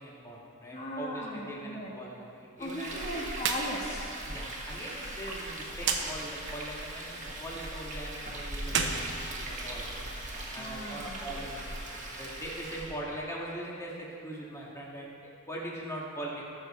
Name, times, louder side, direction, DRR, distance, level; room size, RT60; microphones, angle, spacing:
voice 1, 0.0-3.0 4.2-16.4, right 1 dB, 15° left, -4 dB, 1.8 m, -41 dB
voice 2, 0.7-1.9 2.6-4.2 10.6-11.2, equal, 30° left, -3 dB, 1.3 m, -37 dB
Frying (food), 2.6-13.0, right 1 dB, 35° right, 1.6 m, -40 dB
sound 1, 3.4-3.7 4.0-4.1 5.8-6.0 8.6-9.9, right 6 dB, 55° right, 1.0 m, -31 dB
19.0 x 6.7 x 4.3 m, 2.7 s
head